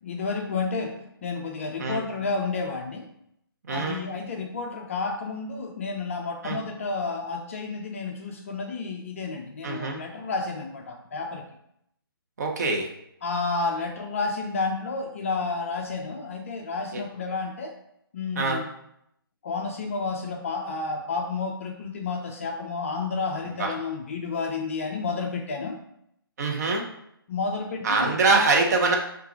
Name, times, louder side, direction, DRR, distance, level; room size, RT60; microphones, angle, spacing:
voice 1, 0.0-3.1 3.7-11.5 13.2-17.7 18.1-18.7 19.4-25.8 27.3-28.5, left 4 dB, 35° left, 4 dB, 0.4 m, -31 dB
voice 2, 3.6-4.0 6.4-6.6 9.6-10.0 12.4-12.9 16.9-17.0 18.4-18.6 23.6-23.7 26.4-26.8 27.8-29.0, right 3 dB, 45° right, 1 dB, 0.8 m, -24 dB
5.7 x 2.4 x 2.7 m, 0.76 s
figure-of-eight pair, 140°, 13 cm